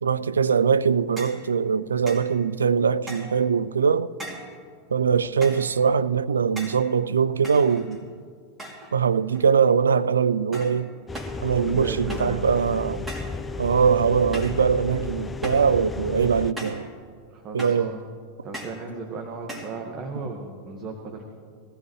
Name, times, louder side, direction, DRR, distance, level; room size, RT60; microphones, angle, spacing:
voice 1, 0.0-4.1 4.9-8.0 8.9-10.9 11.4-13.1 13.6-16.9 17.5-17.9, right 6 dB, 80° right, 0.3 m, -22 dB
sound 1, 1.2-1.5 2.1-2.3 3.1-3.4 4.2-4.6 5.4-5.7 6.6-6.9 7.4-8.1 8.6-9.0 9.3-9.8 10.5-10.8 11.1-11.4 12.1-12.4 13.1-13.4 14.3-14.7 15.4-15.7 16.6-16.9 17.6-17.9 18.5-18.8 19.5-19.8, right 1 dB, 15° right, 2.7 m, -38 dB
sound 2, 11.1-16.5, left 4 dB, 15° left, 0.5 m, -34 dB
voice 2, 11.6-12.4 17.3-18.1 18.4-21.2, right 3 dB, 40° right, 1.4 m, -35 dB
20.0 x 14.5 x 3.1 m
hypercardioid pair, 90°, 0 cm